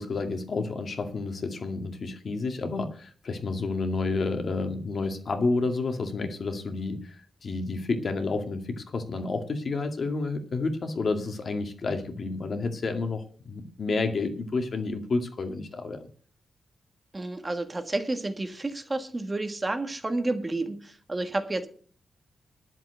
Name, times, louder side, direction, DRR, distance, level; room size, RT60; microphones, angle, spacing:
voice 1, 0.0-16.0, left 3 dB, 45° left, 5 dB, 2.2 m, -30 dB
voice 2, 17.1-21.7, right 2 dB, 20° right, 7 dB, 1.5 m, -30 dB
11.0 x 7.5 x 8.0 m, 0.43 s
wide cardioid pair, 145°, 0 cm